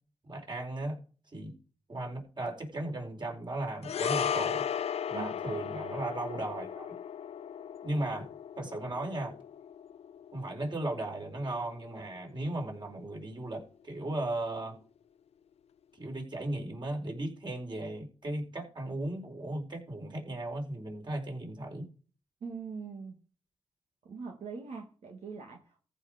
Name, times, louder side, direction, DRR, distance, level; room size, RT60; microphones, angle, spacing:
voice 1, 0.2-1.0 1.3-1.6 1.9-4.6 5.1-6.9 7.8-8.3 8.6-9.3 10.3-14.8 16.0-21.9, right 1 dB, 45° right, 2 dB, 4.5 m, -36 dB
sound 1, 3.8-12.3 12.6-12.8, left 8 dB, 65° left, 0.5 m, -36 dB
voice 2, 5.1-5.6 22.4-23.2 24.0-25.8, right 5 dB, 75° right, 0 dB, 2.0 m, -42 dB
14.5 x 4.9 x 5.1 m, 0.37 s
cardioid pair, 50°, 11 cm